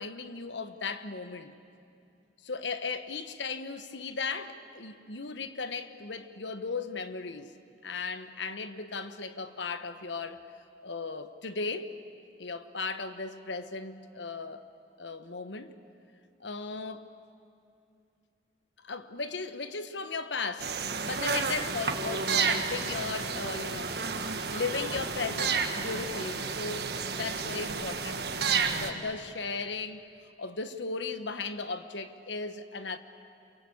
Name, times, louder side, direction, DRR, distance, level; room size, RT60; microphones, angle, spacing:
voice 1, 0.0-1.6 2.4-7.5 7.8-10.4 10.8-11.9 12.4-14.6 15.0-15.7 16.4-17.1 18.8-24.0 24.5-30.0 30.4-33.0, left 4 dB, 80° left, 11 dB, 1.2 m, -36 dB
sound 1, 20.6-28.9, right 5 dB, 60° right, 1.6 m, -31 dB
28.0 x 23.5 x 8.6 m, 2.6 s
head